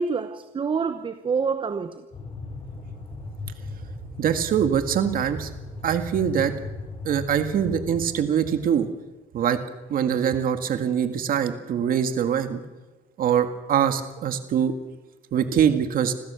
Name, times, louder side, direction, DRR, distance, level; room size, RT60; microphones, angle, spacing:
voice 1, 0.0-2.0, right 5 dB, 30° right, 1.0 m, -27 dB
sound 1, 2.1-8.1, left 3 dB, 35° left, 5.6 m, -37 dB
voice 2, 4.2-5.5 5.8-6.5 7.0-8.9 9.3-9.6 9.9-12.6 13.2-14.7 15.3-16.1, right 8 dB, 60° right, 2.0 m, -23 dB
27.0 x 15.5 x 7.0 m
cardioid pair, 110°, 17 cm